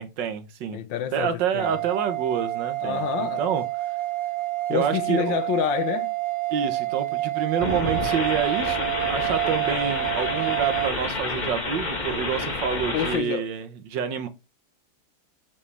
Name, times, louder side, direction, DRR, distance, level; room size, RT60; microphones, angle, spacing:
voice 1, 0.0-0.8 1.1-3.6 4.7-5.4 6.5-14.3, right 7 dB, 65° right, 1.5 m, -28 dB
voice 2, 0.7-1.8 2.8-3.6 4.7-6.1 12.9-13.5, left 10 dB, 70° left, 1.3 m, -28 dB
sound 1, 1.6-10.9, right 17 dB, 40° right, 1.1 m, -28 dB
sound 2, 7.6-13.2, left 2 dB, 25° left, 1.4 m, -29 dB
6.7 x 5.5 x 3.3 m
omnidirectional pair, 2.3 m